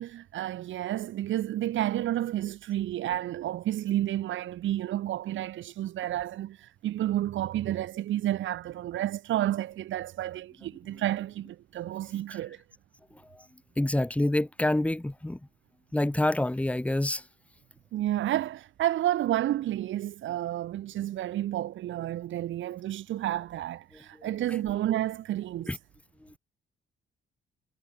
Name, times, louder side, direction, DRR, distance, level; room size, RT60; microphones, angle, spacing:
voice 1, 0.0-12.6 17.9-25.7, right 13 dB, 75° right, 1.3 m, -30 dB
voice 2, 13.8-15.4 15.9-17.2 24.2-24.3 25.7-25.8 26.2-26.3, left 1 dB, 5° left, 1.4 m, -27 dB
cardioid pair, 90°, 20 cm